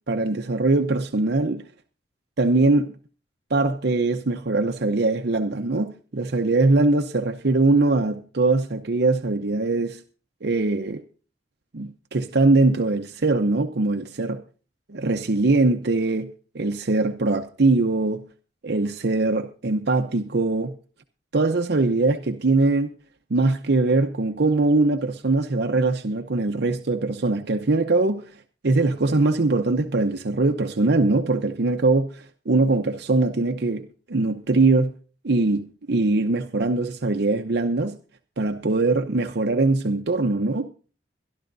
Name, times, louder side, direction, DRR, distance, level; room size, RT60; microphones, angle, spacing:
voice 1, 0.1-1.6 2.4-2.9 3.5-10.0 10.4-11.0 11.7-14.4 14.9-16.3 16.5-18.3 18.6-20.7 21.3-22.9 23.3-28.2 28.6-35.0 35.2-38.0 38.4-40.7, right 3 dB, 65° right, 0.8 m, -22 dB
22.5 x 12.0 x 2.6 m
head